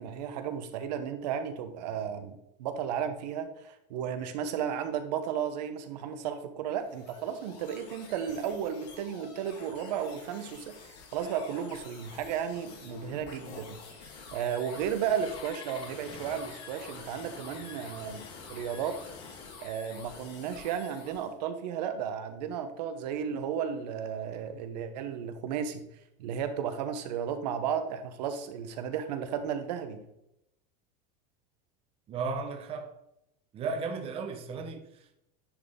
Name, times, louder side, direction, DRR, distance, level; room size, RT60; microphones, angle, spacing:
voice 1, 0.0-13.8 14.3-18.2 18.5-18.9 19.6-25.8 26.2-30.0, right 8 dB, 85° right, 1.0 m, -34 dB
sound 1, 6.7-21.3, left 5 dB, 85° left, 2.2 m, -48 dB
Engine starting, 15.1-19.8, left 5 dB, 25° left, 0.9 m, -50 dB
voice 2, 32.1-33.0 33.5-35.2, right 4 dB, 25° right, 0.8 m, -35 dB
10.0 x 4.2 x 3.7 m
supercardioid pair, 155°, 21 cm